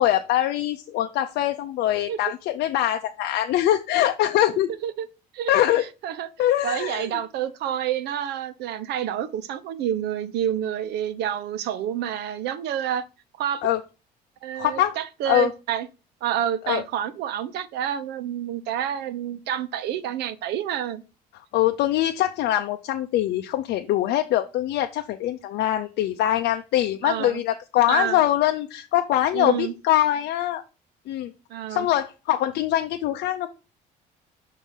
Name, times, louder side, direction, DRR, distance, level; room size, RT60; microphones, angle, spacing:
voice 1, 0.0-4.7 5.5-5.8 6.4-7.1 13.6-13.8 14.6-15.0 15.3-15.5 16.6-16.8 21.5-30.6 31.1-31.3 31.7-33.5, left 13 dB, 80° left, 0.5 m, -23 dB
voice 2, 6.6-13.0 13.4-13.7 14.4-15.9 16.2-21.0 27.0-27.4 27.9-28.2 29.3-29.7 31.5-31.9, right 10 dB, 80° right, 0.7 m, -28 dB
7.3 x 2.7 x 5.5 m
cardioid pair, 110°, 17 cm